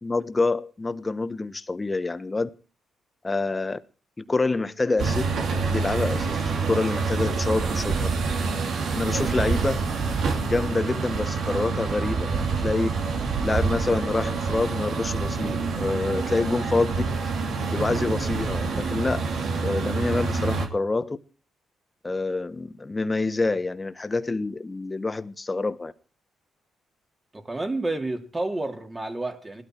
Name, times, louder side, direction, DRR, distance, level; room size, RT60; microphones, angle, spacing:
voice 1, 0.0-2.5 3.2-3.8 4.2-5.2 5.7-8.1 8.9-9.8 10.4-12.9 13.4-17.0 17.7-19.3 19.6-21.2 22.0-25.9, left 3 dB, 25° left, 1.3 m, -27 dB
sound 1, 5.0-20.7, right 4 dB, 70° right, 2.8 m, -27 dB
voice 2, 27.3-29.6, right 2 dB, 20° right, 3.2 m, -30 dB
18.5 x 12.5 x 4.7 m
cardioid pair, 70°, 0 cm